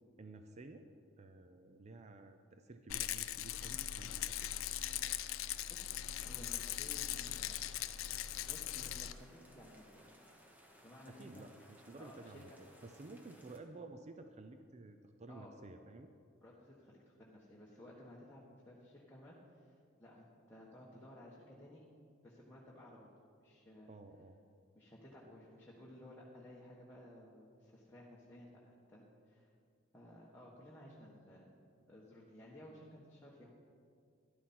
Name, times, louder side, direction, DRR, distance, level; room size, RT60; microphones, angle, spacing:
voice 1, 0.2-0.9 1.2-4.5 11.1-16.1 23.9-24.4, right 2 dB, 35° right, 7 dB, 0.5 m, -53 dB
Rattle, 2.9-9.1, left 12 dB, 85° left, 0.5 m, -40 dB
sound 1, 3.5-13.6, equal, 10° right, 1.2 m, -63 dB
voice 2, 5.7-7.7 8.4-10.0 10.8-11.4 12.0-12.6 15.3-15.5 16.4-21.8 22.2-23.1 23.4-23.9 24.7-29.5 29.9-31.5 31.9-33.5, left 1 dB, 10° left, -6 dB, 1.2 m, -56 dB
13.5 x 11.5 x 4.3 m, 2.4 s
head